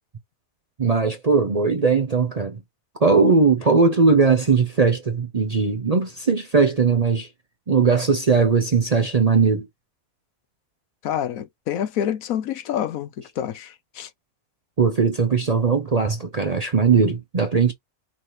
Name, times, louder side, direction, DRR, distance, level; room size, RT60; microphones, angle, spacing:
voice 1, 0.8-2.6 3.0-7.3 7.7-9.7 14.8-17.7, right 4 dB, 40° right, 0.6 m, -19 dB
voice 2, 11.0-14.1, left 10 dB, 75° left, 1.1 m, -27 dB
5.6 x 2.8 x 3.1 m
omnidirectional pair, 1.5 m